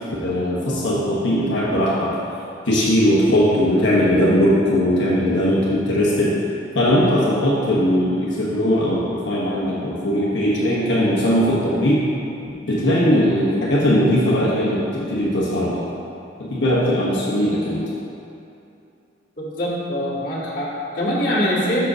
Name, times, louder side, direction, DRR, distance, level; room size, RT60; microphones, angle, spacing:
voice 1, 0.2-2.2 2.7-6.4 6.7-12.1 12.7-15.9 16.4-17.9, equal, 85° left, -6 dB, 1.1 m, -19 dB
voice 2, 19.4-21.9, equal, 50° left, -8 dB, 1.9 m, -23 dB
6.1 x 4.9 x 6.2 m, 2.7 s
head